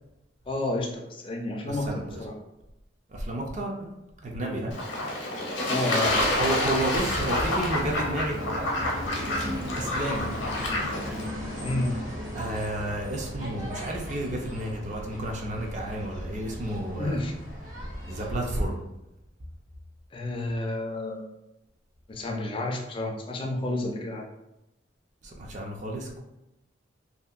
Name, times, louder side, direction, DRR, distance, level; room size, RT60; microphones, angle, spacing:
voice 1, 0.5-2.3 4.3-4.6 5.7-6.2 11.6-12.0 17.0-17.3 20.1-21.3 22.1-24.2, left 2 dB, 25° left, 1 dB, 0.3 m, -30 dB
voice 2, 1.7-2.2 3.1-3.9 4.2-4.7 6.4-8.7 9.8-10.3 12.3-17.2 18.1-18.8 25.2-26.2, right 1 dB, 40° right, 0 dB, 0.4 m, -31 dB
Fowl / Bird / Water, 4.7-11.3, left 1 dB, 65° left, 0.7 m, -28 dB
Musical instrument, 6.0-16.3, equal, 65° right, 0.8 m, -46 dB
sound 1, 6.0-18.6, equal, 85° right, 1.4 m, -37 dB
2.7 x 2.5 x 2.3 m, 0.92 s
head